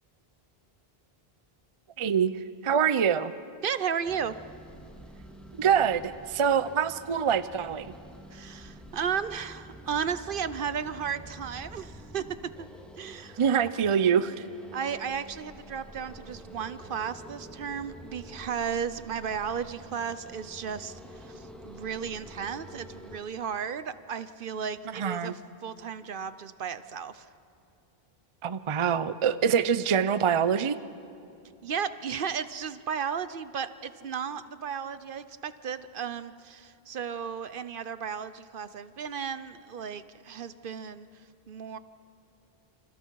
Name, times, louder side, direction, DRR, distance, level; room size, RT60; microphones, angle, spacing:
voice 1, 2.0-2.3 2.6-3.3 5.6-7.9 13.4-14.4 24.9-25.3 28.4-30.8, right 7 dB, 40° right, 14 dB, 0.5 m, -25 dB
voice 2, 3.6-4.4 8.3-12.3 12.6-12.7 13.0-13.4 14.7-27.3 31.6-41.1 41.5-41.8, right 7 dB, 60° right, 14 dB, 0.8 m, -34 dB
sound 1, 4.0-23.2, equal, ahead, 2.0 m, -48 dB
28.5 x 26.5 x 4.6 m, 2.6 s
omnidirectional pair, 1.0 m